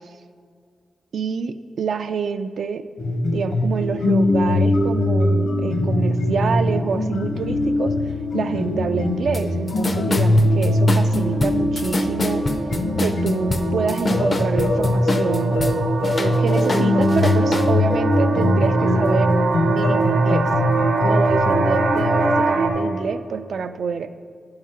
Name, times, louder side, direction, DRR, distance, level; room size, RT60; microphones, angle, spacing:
voice 1, 1.1-2.8 3.3-7.9 8.3-12.5 13.0-15.6 16.2-19.4 19.7-20.5 21.0-24.1, right 6 dB, 70° right, 11 dB, 0.3 m, -26 dB
sound 1, 3.0-22.5, left 1 dB, 75° left, 0.8 m, -21 dB
sound 2, 4.3-4.8 5.4-5.6 5.8-6.1 6.4-22.7, right 4 dB, 90° right, 0.9 m, -26 dB
sound 3, 9.3-9.4 9.7-15.7 16.0-17.7, left 2 dB, 30° left, 0.4 m, -25 dB
10.5 x 4.8 x 5.6 m, 2.1 s
wide cardioid pair, 165°, 0 cm